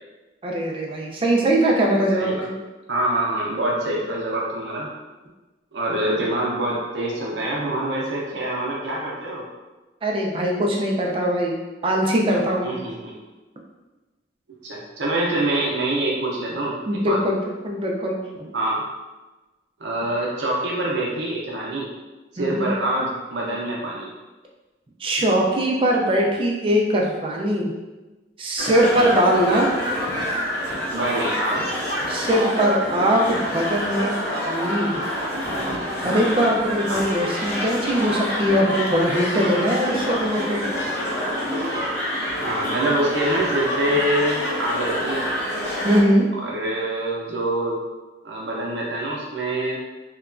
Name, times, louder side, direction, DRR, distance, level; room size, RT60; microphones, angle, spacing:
voice 1, 0.4-2.5 10.0-11.6 11.8-12.9 16.9-17.4 17.6-18.5 22.4-22.7 25.0-27.7 28.4-29.8 32.1-34.1 34.5-35.1 36.0-40.6 45.8-46.2, equal, 30° right, 0 dB, 0.4 m, -21 dB
voice 2, 2.9-4.9 5.7-9.5 12.6-13.1 14.6-17.2 18.5-18.8 19.8-21.9 22.3-24.1 28.9-29.1 30.9-31.7 36.0-36.5 36.9-37.0 42.4-45.3 46.4-47.8 48.2-49.8, right 1 dB, 80° right, -4 dB, 0.5 m, -25 dB
sound 1, 28.6-46.0, equal, 75° left, 0.8 m, -27 dB
2.9 x 2.2 x 2.4 m, 1.2 s
head